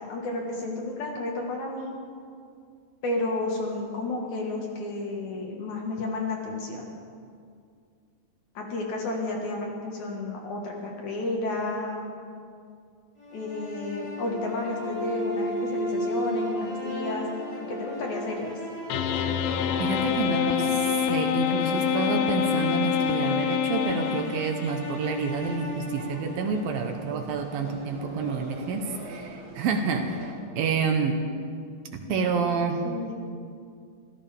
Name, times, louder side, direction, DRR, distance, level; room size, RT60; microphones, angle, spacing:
voice 1, 0.1-2.0 3.0-6.9 8.5-12.1 13.3-17.3 17.6-18.5 32.1-32.4 32.8-33.1, left 2 dB, 55° left, 0 dB, 2.7 m, -32 dB
sound 1, 13.2-27.3, left 1 dB, 10° left, 2.7 m, -35 dB
sound 2, 18.9-24.7, left 8 dB, 75° left, 2.2 m, -26 dB
voice 2, 19.8-31.2 31.9-32.8, right 4 dB, 75° right, 4 dB, 2.7 m, -28 dB
sound 3, 25.2-30.3, right 3 dB, 55° right, 2.7 m, -43 dB
26.0 x 15.5 x 3.5 m, 2.3 s
omnidirectional pair, 4.5 m